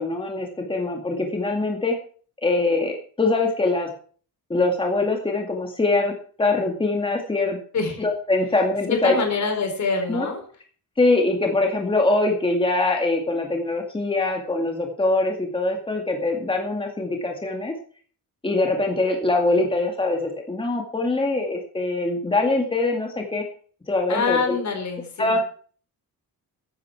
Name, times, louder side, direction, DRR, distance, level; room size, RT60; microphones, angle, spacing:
voice 1, 0.0-1.9 2.4-3.9 4.5-6.1 6.4-7.6 8.0-9.2 10.1-10.3 11.0-17.7 18.4-23.4 23.9-24.6 25.2-25.4, left 2 dB, 15° left, 2 dB, 2.2 m, -23 dB
voice 2, 8.9-10.4 24.1-25.4, left 5 dB, 50° left, 4 dB, 4.9 m, -25 dB
14.5 x 12.0 x 4.6 m, 0.44 s
wide cardioid pair, 170°, 37 cm